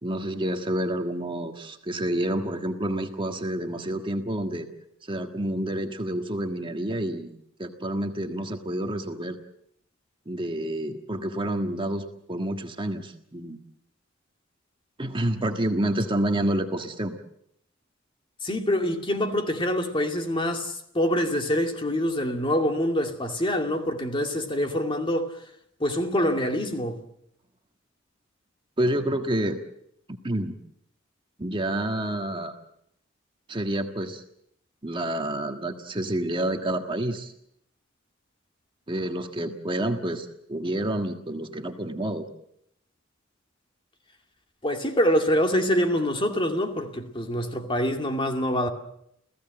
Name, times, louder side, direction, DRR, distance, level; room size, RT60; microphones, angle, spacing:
voice 1, 0.0-4.7 5.0-9.4 10.2-13.6 15.0-17.2 28.8-29.6 30.2-30.5 31.4-32.5 33.5-34.2 34.8-37.3 38.9-42.3, right 1 dB, 25° right, 1.6 m, -29 dB
voice 2, 18.4-25.3 25.8-27.0 44.6-48.7, equal, 25° left, 2.4 m, -25 dB
29.5 x 16.0 x 7.8 m
head